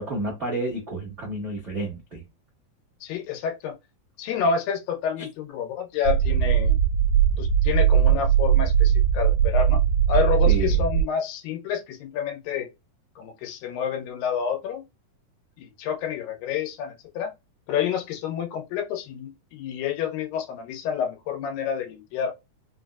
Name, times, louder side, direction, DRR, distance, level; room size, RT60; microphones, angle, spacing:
voice 1, 0.0-2.2 10.4-10.8, right 1 dB, 70° right, 0.6 m, -30 dB
voice 2, 3.0-3.8 4.2-6.8 7.4-9.8 10.1-12.7 13.2-14.8 15.6-17.3 17.7-22.3, left 7 dB, 90° left, 2.6 m, -29 dB
sound 1, 6.1-11.0, right 9 dB, 85° right, 2.3 m, -20 dB
5.4 x 2.2 x 2.3 m
omnidirectional pair, 3.9 m